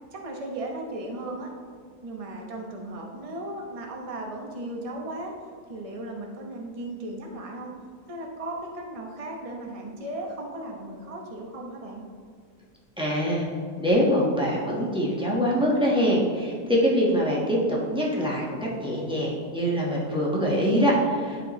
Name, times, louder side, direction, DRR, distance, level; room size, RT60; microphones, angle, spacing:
voice 1, 0.1-1.5 2.0-5.3 5.7-7.7 8.1-12.0, right 1 dB, 30° right, 0 dB, 0.7 m, -36 dB
voice 2, 13.0-13.5 13.8-21.4, equal, 5° right, -5 dB, 1.1 m, -24 dB
11.5 x 4.5 x 3.1 m, 2.1 s
omnidirectional pair, 1.8 m